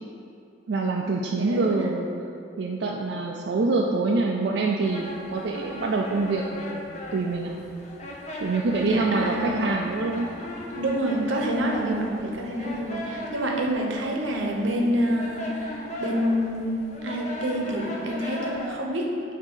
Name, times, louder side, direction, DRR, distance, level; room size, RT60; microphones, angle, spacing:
voice 1, 0.7-2.1 2.6-6.8 7.1-7.6 8.4-10.3, right 3 dB, 65° right, 0 dB, 0.4 m, -25 dB
voice 2, 1.4-1.8 8.8-9.7 10.7-19.2, equal, 85° right, 0 dB, 0.9 m, -27 dB
sound 1, 4.8-18.8, left 1 dB, 35° left, 0.8 m, -37 dB
7.9 x 2.8 x 5.3 m, 2.6 s
head